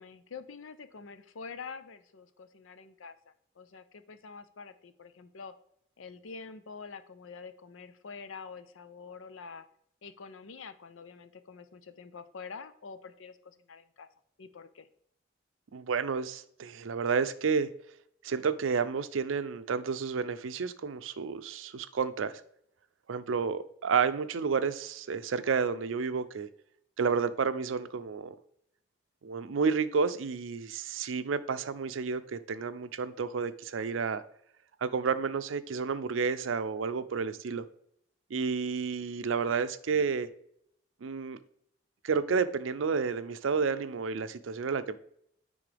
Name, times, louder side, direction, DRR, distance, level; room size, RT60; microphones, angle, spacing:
voice 1, 0.0-3.1 3.6-5.5 6.0-9.6 10.0-14.1 14.4-14.9, left 5 dB, 90° left, 12 dB, 0.6 m, -46 dB
voice 2, 15.7-17.7 18.2-22.3 23.1-26.5 27.0-28.4 29.2-34.2 34.8-37.6 38.3-40.3 41.0-41.4 42.0-45.0, right 5 dB, 85° right, 13 dB, 0.5 m, -30 dB
9.6 x 3.8 x 3.4 m, 0.71 s
head